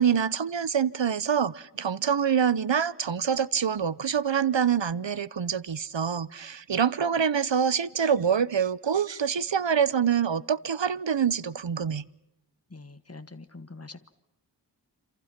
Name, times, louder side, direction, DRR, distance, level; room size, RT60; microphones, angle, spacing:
voice 1, 0.0-12.1, right 7 dB, 90° right, 0.8 m, -26 dB
voice 2, 12.7-14.1, left 3 dB, 35° left, 1.4 m, -44 dB
28.0 x 27.0 x 5.9 m
wide cardioid pair, 45°, 43 cm